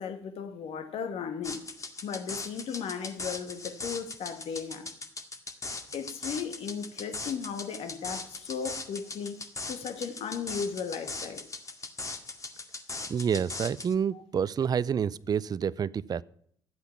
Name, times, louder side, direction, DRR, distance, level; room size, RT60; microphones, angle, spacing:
voice 1, 0.0-1.6 2.0-4.9 5.9-9.4 9.7-11.4 14.1-14.2, left 6 dB, 60° left, 8 dB, 1.7 m, -36 dB
sound 1, 1.4-13.9, left 3 dB, 30° left, 2.1 m, -39 dB
voice 2, 13.1-16.2, right 7 dB, 35° right, 19 dB, 0.5 m, -28 dB
12.5 x 8.2 x 5.9 m, 0.64 s
hypercardioid pair, 60°, 11 cm